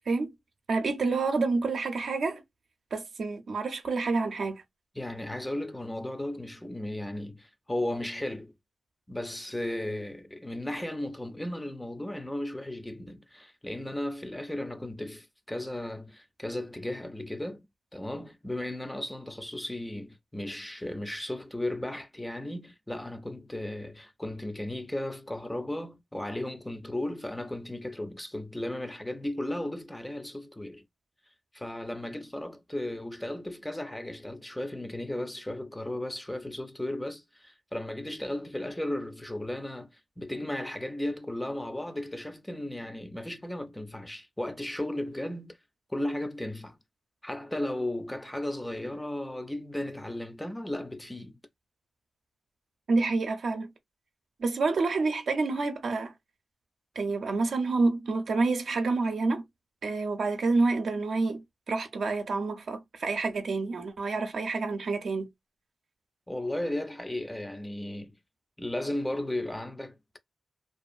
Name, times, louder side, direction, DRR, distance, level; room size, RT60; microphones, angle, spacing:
voice 1, 0.7-2.4 2.9-4.6 52.9-53.7 54.4-56.1 57.0-59.4 59.8-65.3, right 3 dB, 70° right, 0.5 m, -28 dB
voice 2, 5.0-8.5 9.1-17.6 17.9-30.8 31.5-45.6 45.9-46.8 47.2-51.4 66.3-68.2 68.6-70.2, left 1 dB, 10° left, 0.3 m, -35 dB
2.5 x 2.3 x 2.4 m
wide cardioid pair, 95°, 0 cm